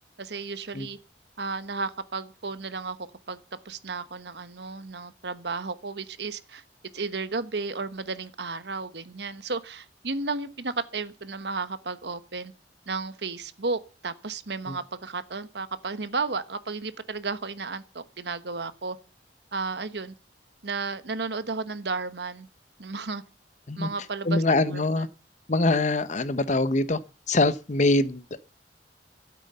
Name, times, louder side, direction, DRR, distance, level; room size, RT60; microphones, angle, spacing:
voice 1, 0.2-1.0 1.4-3.0 3.3-6.6 6.9-12.5 12.9-19.0 19.5-20.1 20.6-22.5 22.8-23.2 23.8-25.0, right 4 dB, 70° right, 1.1 m, -33 dB
voice 2, 24.2-25.1 25.5-27.0 27.3-28.5, left 2 dB, 45° left, 0.9 m, -24 dB
13.5 x 8.3 x 6.8 m
head